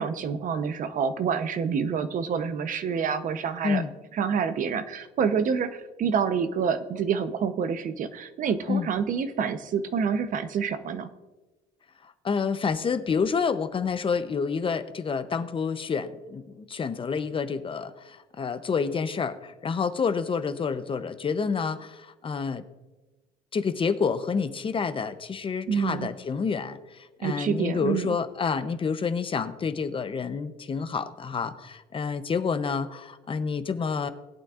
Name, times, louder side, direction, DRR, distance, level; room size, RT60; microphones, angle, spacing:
voice 1, 0.0-3.8 4.1-11.1 25.7-26.1 27.2-28.1, right 6 dB, 50° right, 10 dB, 0.8 m, -27 dB
voice 2, 12.0-22.6 23.5-34.1, left 5 dB, 30° left, 11 dB, 0.7 m, -28 dB
19.5 x 8.8 x 2.5 m, 1.1 s
cardioid pair, 110°, 17 cm